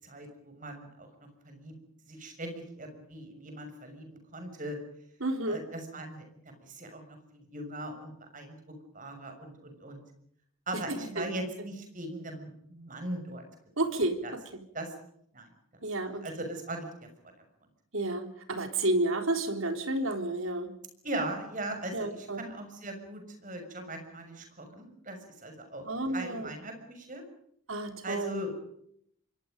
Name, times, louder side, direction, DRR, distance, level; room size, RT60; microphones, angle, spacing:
voice 1, 0.0-1.7 2.1-4.8 5.5-6.3 6.6-10.0 10.7-13.4 14.2-14.3 14.7-14.9 15.3-15.5 16.2-17.1 21.0-25.8 26.1-27.2 28.0-28.6, right 1 dB, 40° right, 6 dB, 6.5 m, -39 dB
voice 2, 5.2-5.6 10.7-10.8 11.2-11.3 13.8-14.2 15.8-16.3 17.9-20.7 21.9-22.4 25.9-26.5 27.7-28.4, right 2 dB, 80° right, 6 dB, 3.8 m, -31 dB
27.5 x 24.0 x 5.3 m, 0.71 s
head